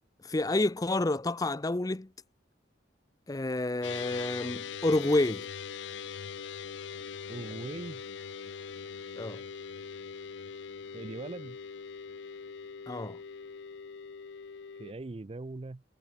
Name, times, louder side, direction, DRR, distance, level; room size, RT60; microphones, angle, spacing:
voice 1, 0.2-2.1 3.3-5.5 9.2-9.4 12.9-13.2, left 2 dB, 20° left, 0.5 m, -29 dB
sound 1, 3.8-14.9, left 6 dB, 85° left, 0.5 m, -42 dB
voice 2, 7.3-8.0 10.9-11.6 14.8-15.8, right 2 dB, 30° right, 0.5 m, -40 dB
head